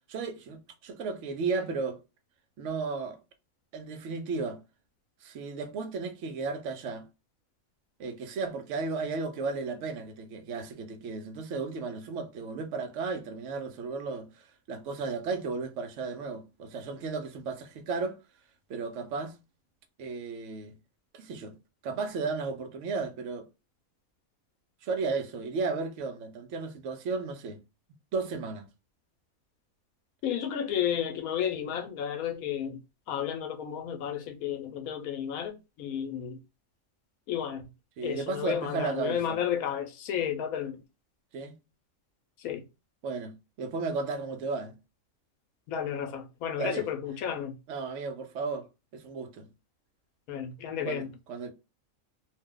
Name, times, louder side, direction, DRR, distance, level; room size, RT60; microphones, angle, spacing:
voice 1, 0.1-2.0 2.6-3.2 3.7-4.6 5.2-7.0 8.0-18.2 18.7-19.4 20.0-20.7 21.1-21.6 21.8-23.5 24.8-27.6 28.1-28.7 38.0-39.4 41.3-41.6 43.0-44.7 46.6-46.8 47.7-48.7 48.9-49.5 50.8-51.5, right 4 dB, 65° right, 0.8 m, -34 dB
voice 2, 30.2-32.8 33.1-36.4 37.3-37.6 38.0-40.8 42.4-42.6 45.7-47.6 50.3-51.1, left 9 dB, 85° left, 1.1 m, -32 dB
2.6 x 2.2 x 3.6 m
omnidirectional pair, 1.5 m